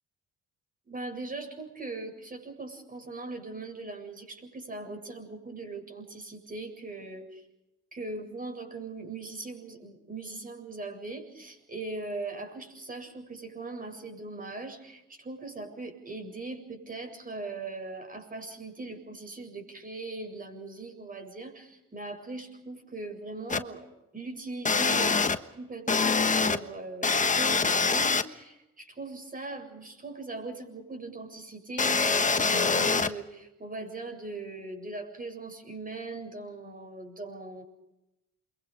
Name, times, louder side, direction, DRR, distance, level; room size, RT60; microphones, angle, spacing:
voice 1, 0.9-7.4 7.9-23.9 24.1-25.2 25.5-37.6, right 3 dB, 30° right, 5 dB, 7.6 m, -40 dB
sound 1, 23.5-23.6 24.6-25.4 25.9-26.6 27.0-28.2 31.8-33.1, left 4 dB, 25° left, 1.3 m, -24 dB
28.5 x 23.5 x 5.2 m, 0.92 s
cardioid pair, 90°, 30 cm